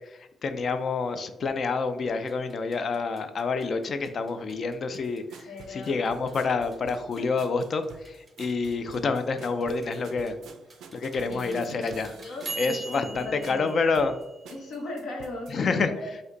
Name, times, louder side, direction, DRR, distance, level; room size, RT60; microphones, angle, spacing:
voice 1, 0.1-10.4 10.9-12.1 12.6-14.2 15.5-15.9, left 4 dB, 45° left, 9 dB, 0.4 m, -28 dB
sound 1, 2.3-14.9, right 2 dB, 15° right, 0.6 m, -45 dB
sound 2, 5.0-15.5, right 5 dB, 90° right, 0.4 m, -49 dB
voice 2, 5.4-6.0 11.2-11.8 12.2-14.0 14.5-16.1, left 1 dB, 70° left, 0 dB, 1.2 m, -38 dB
5.1 x 2.2 x 3.8 m, 0.94 s
cardioid pair, 155°, 0 cm